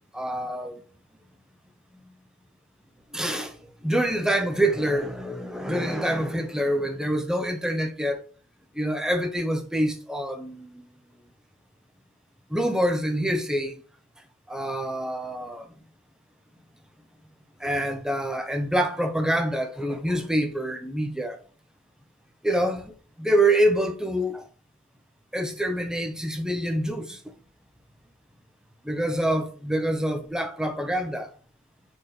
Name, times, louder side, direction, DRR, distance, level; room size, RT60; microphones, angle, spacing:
voice 1, 0.1-0.8 3.1-3.5 3.8-8.2 8.8-10.8 12.5-13.7 14.5-15.7 17.6-21.4 22.4-22.9 23.2-24.4 25.3-27.2 28.9-31.3, right 1 dB, 5° right, 0.7 m, -26 dB
4.9 x 4.5 x 5.5 m
head